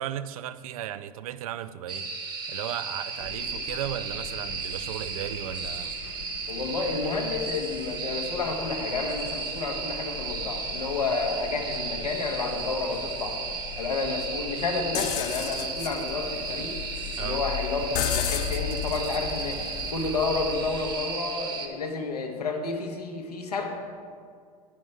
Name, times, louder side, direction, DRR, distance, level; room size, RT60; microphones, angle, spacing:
voice 1, 0.0-2.1 2.5-5.9 17.2-17.4, right 11 dB, 65° right, 14 dB, 0.5 m, -35 dB
sound 1, 1.9-21.7, right 4 dB, 20° right, 1.2 m, -35 dB
sound 2, 3.2-21.0, left 6 dB, 55° left, 0.8 m, -44 dB
voice 2, 6.5-13.4 13.8-16.8 17.2-19.6 19.9-23.7, left 3 dB, 85° left, 2 dB, 1.3 m, -30 dB
sound 3, 14.9-20.7, left 11 dB, 40° left, 0.4 m, -33 dB
9.5 x 9.1 x 3.3 m, 2.1 s
hypercardioid pair, 90°, 20 cm